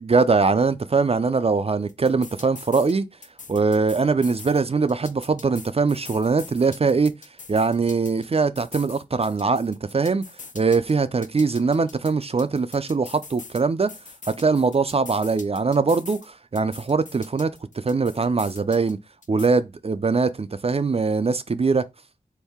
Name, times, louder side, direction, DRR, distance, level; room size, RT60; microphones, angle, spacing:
voice 1, 0.1-3.1 3.5-7.1 7.5-10.2 10.5-13.9 14.3-19.0 19.3-21.8, right 4 dB, 40° right, 0.4 m, -22 dB
sound 1, 1.9-2.9 3.2-4.6 4.9-8.3 8.6-10.9 11.2-13.6 13.9-16.3 16.6-18.9 19.2-19.5, left 4 dB, 60° left, 0.5 m, -43 dB
3.9 x 2.7 x 3.5 m
wide cardioid pair, 65°, 15 cm